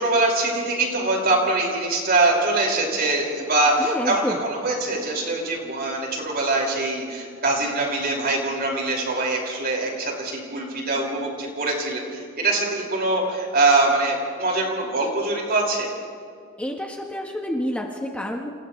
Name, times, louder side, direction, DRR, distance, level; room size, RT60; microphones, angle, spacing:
voice 1, 0.0-15.9, right 2 dB, 50° right, -2 dB, 5.5 m, -23 dB
voice 2, 3.8-4.4 16.6-18.5, equal, 5° left, 0 dB, 1.2 m, -28 dB
29.0 x 28.0 x 3.3 m, 2.1 s
head